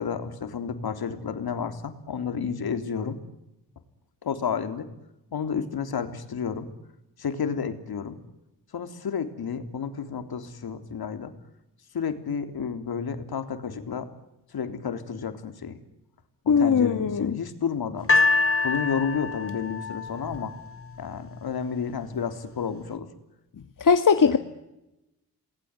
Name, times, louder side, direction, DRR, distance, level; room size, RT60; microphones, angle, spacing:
voice 1, 0.0-3.2 4.2-4.9 5.3-6.7 7.2-8.2 8.7-11.3 11.9-14.1 14.5-15.8 16.5-18.1 18.6-20.5 21.0-23.1 24.2-24.4, left 6 dB, 65° left, 9 dB, 3.5 m, -31 dB
voice 2, 16.5-17.3 23.8-24.4, left 6 dB, 50° left, 8 dB, 1.9 m, -19 dB
sound 1, 18.1-21.3 22.0-22.1, left 3 dB, 35° left, 3.2 m, -25 dB
28.0 x 20.5 x 9.7 m, 0.92 s
supercardioid pair, 45°, 39 cm